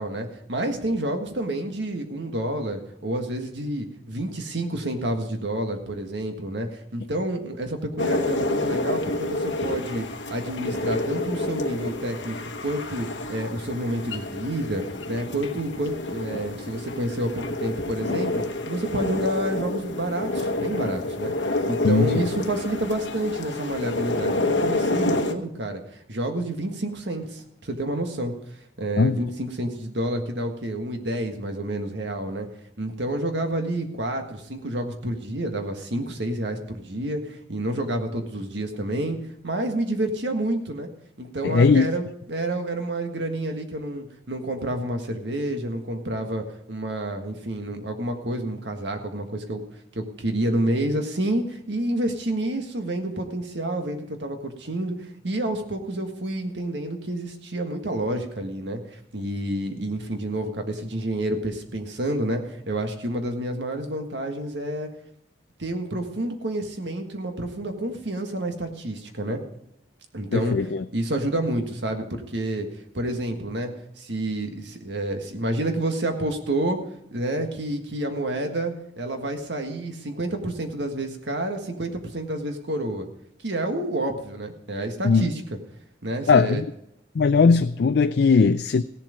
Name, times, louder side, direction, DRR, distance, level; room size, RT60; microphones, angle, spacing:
voice 1, 0.0-12.4 12.6-28.3 28.8-32.5 32.8-39.2 39.4-40.9 41.2-49.6 49.9-64.9 65.6-69.4 70.1-72.7 72.9-76.8 77.1-83.1 83.4-85.4 86.0-86.6, right 1 dB, 75° right, 5 dB, 1.7 m, -29 dB
sound 1, 8.0-25.3, left 2 dB, 85° left, 1.1 m, -29 dB
voice 2, 41.4-41.9 70.3-70.8 85.0-85.3 86.3-86.7 87.1-88.8, left 4 dB, 60° left, 10 dB, 0.4 m, -19 dB
16.5 x 7.5 x 5.1 m, 0.79 s
head